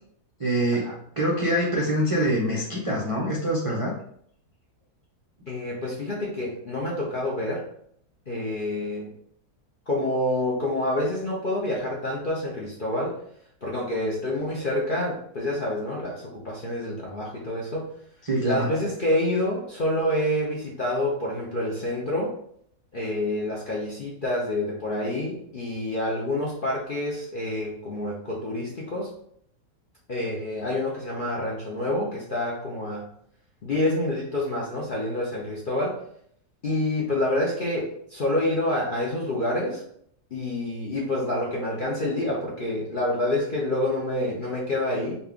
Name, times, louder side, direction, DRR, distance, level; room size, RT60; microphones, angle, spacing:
voice 1, 0.4-0.9 1.2-3.9 18.2-18.7, right 1 dB, 55° right, -5 dB, 0.3 m, -24 dB
voice 2, 5.5-7.6 8.3-9.1 9.9-13.2 13.6-17.9 18.4-22.3 22.9-29.1 30.1-33.0 33.6-36.0 36.6-39.8 40.3-45.2, left 1 dB, 50° left, -4 dB, 0.6 m, -27 dB
4.1 x 2.3 x 3.5 m, 0.67 s
omnidirectional pair, 1.8 m